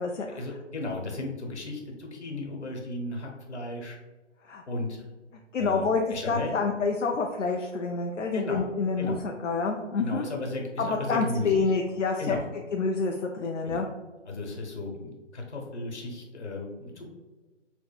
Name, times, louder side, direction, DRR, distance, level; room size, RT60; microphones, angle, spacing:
voice 1, 0.3-4.0 4.7-5.0 5.6-6.6 8.3-8.7 9.0-9.2 10.0-11.8 12.2-12.5 13.6-13.8 14.2-17.1, left 2 dB, 65° left, 1 dB, 1.0 m, -35 dB
voice 2, 5.5-10.3 10.8-12.4 12.7-13.9, left 4 dB, 80° left, 2 dB, 0.5 m, -28 dB
5.9 x 2.1 x 2.3 m, 1.2 s
figure-of-eight pair, 140°, 37 cm